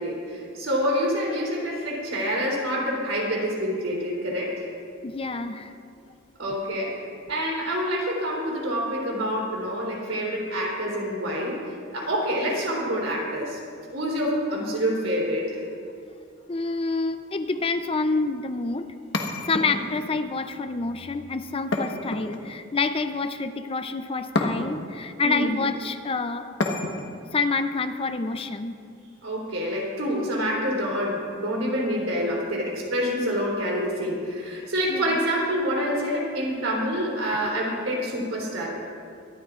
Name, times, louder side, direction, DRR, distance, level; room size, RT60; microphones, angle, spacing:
voice 1, 0.0-4.7 6.4-7.0 7.3-11.6 11.9-13.6 13.9-15.6 19.5-19.8 25.2-25.6 29.2-38.7, equal, 80° right, -3 dB, 3.5 m, -27 dB
voice 2, 5.0-5.8 16.5-18.9 19.4-26.5 27.3-28.8 34.9-35.2 37.4-37.5, left 3 dB, 30° left, 9 dB, 0.5 m, -28 dB
sound 1, 19.1-20.1 21.7-22.7 24.3-25.0 26.6-27.2, left 2 dB, 60° left, 1.2 m, -29 dB
23.5 x 12.5 x 2.5 m, 2.4 s
head